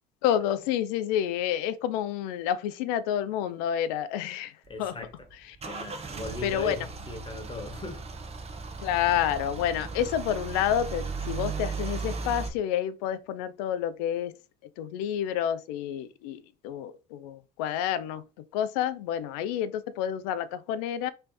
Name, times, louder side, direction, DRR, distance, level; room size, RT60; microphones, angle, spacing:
voice 1, 0.2-5.0 6.4-6.8 8.8-14.3 14.8-21.1, left 10 dB, 75° left, 0.5 m, -29 dB
voice 2, 4.7-5.1 5.6-8.0 8.5-8.8, left 2 dB, 25° left, 1.4 m, -39 dB
Car / Engine starting / Idling, 4.7-12.5, right 4 dB, 30° right, 0.9 m, -36 dB
3.2 x 3.1 x 4.2 m
hypercardioid pair, 65°, 20 cm